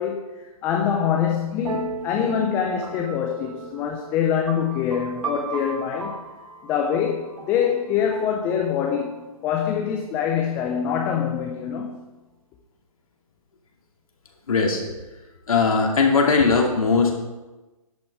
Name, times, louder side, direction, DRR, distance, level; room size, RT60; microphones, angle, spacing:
voice 1, 0.0-6.2 6.6-12.0, left 8 dB, 10° left, 2 dB, 0.4 m, -25 dB
sound 1, 1.6-9.2, right 4 dB, 65° right, 1.7 m, -36 dB
voice 2, 14.5-14.8 15.5-17.1, left 4 dB, 70° left, 0 dB, 2.5 m, -19 dB
10.5 x 6.2 x 4.7 m, 1.1 s
hypercardioid pair, 150°, 19 cm